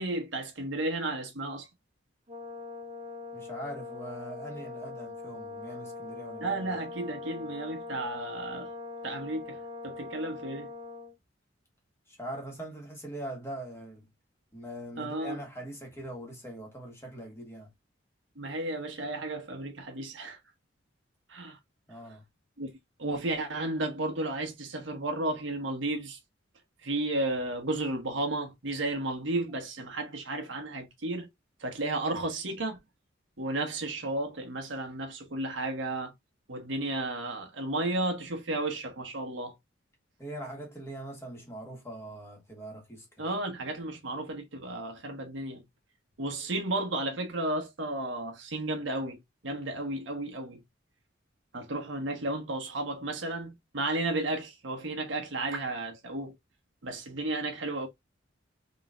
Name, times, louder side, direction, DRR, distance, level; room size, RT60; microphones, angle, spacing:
voice 1, 0.0-1.7 6.4-8.7 9.0-10.7 15.0-15.4 18.4-20.4 21.3-21.6 22.6-22.7 23.0-26.2 26.8-31.3 31.6-32.8 33.4-36.1 36.5-39.5 43.2-45.6 46.2-49.2 49.4-50.6 51.5-56.3 56.8-57.9, right 2 dB, 70° right, 1.2 m, -33 dB
Brass instrument, 2.3-11.2, left 3 dB, 30° right, 1.0 m, -42 dB
voice 2, 3.3-6.7 12.1-14.0 14.5-17.7 21.9-22.2 40.2-43.3 51.5-51.6, right 1 dB, 15° left, 1.4 m, -42 dB
3.8 x 3.1 x 2.4 m
head